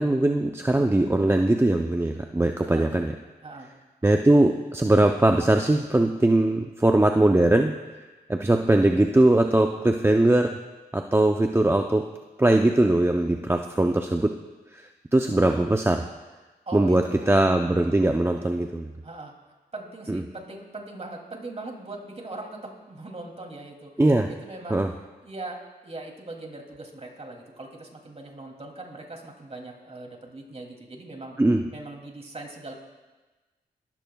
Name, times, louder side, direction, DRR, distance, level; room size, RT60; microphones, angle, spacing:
voice 1, 0.0-3.1 4.0-7.8 8.3-10.6 10.9-12.1 12.4-14.4 14.7-16.1 16.7-18.9 20.1-20.2 24.0-24.3 24.7-24.9 31.4-31.7, right 1 dB, 15° right, 4 dB, 0.6 m, -21 dB
voice 2, 2.6-2.9 3.4-3.7 16.7-17.4 19.0-19.3 19.7-23.9 24.3-24.8 25.2-31.4 31.7-32.7, right 2 dB, 40° right, 2 dB, 2.8 m, -40 dB
20.0 x 13.5 x 2.3 m, 1.2 s
cardioid pair, 60°, 17 cm